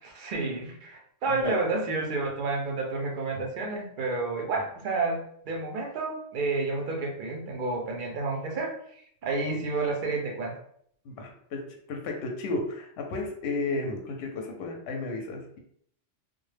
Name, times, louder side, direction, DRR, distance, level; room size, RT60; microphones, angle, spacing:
voice 1, 0.0-8.8 9.2-10.5, right 3 dB, 65° right, 1 dB, 0.5 m, -30 dB
voice 2, 11.0-11.6 11.9-15.6, left 3 dB, 65° left, 2 dB, 0.7 m, -33 dB
2.1 x 2.0 x 3.2 m, 0.65 s
omnidirectional pair, 1.3 m